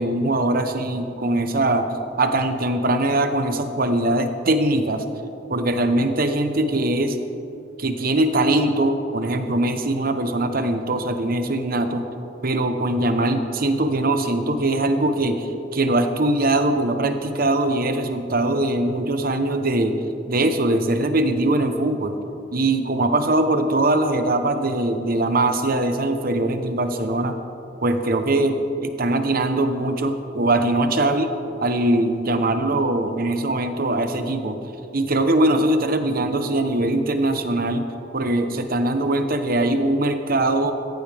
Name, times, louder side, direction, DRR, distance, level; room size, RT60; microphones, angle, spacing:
voice 1, 0.0-1.9 2.2-5.0 5.5-7.2 7.8-12.0 12.4-20.0 20.3-22.2 22.5-27.4 27.8-31.3 31.6-34.6 34.9-37.9 38.1-40.7, right 2 dB, 50° right, 8 dB, 1.0 m, -21 dB
16.0 x 15.0 x 3.5 m, 2.8 s
head